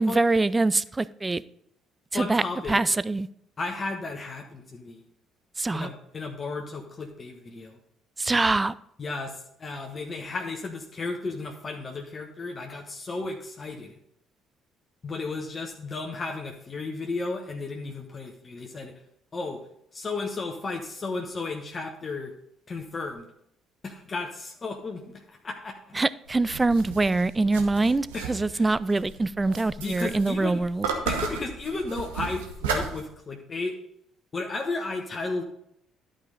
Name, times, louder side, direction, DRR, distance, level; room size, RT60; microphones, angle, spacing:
voice 1, 0.0-1.4 2.1-2.4 2.7-3.3 5.6-5.9 8.2-8.7 25.9-30.9, right 3 dB, 20° right, 18 dB, 0.4 m, -24 dB
voice 2, 2.1-2.8 3.6-5.0 5.7-7.8 9.0-14.0 15.0-19.0 19.3-19.6 19.9-22.3 22.7-23.3 23.8-25.9 28.1-28.7 29.8-30.6 31.0-33.7 34.3-35.4, left 3 dB, 35° left, 2 dB, 1.1 m, -34 dB
sound 1, 26.3-33.0, right 5 dB, 80° right, 1.0 m, -34 dB
11.5 x 5.1 x 4.0 m, 0.74 s
hypercardioid pair, 50°, 0 cm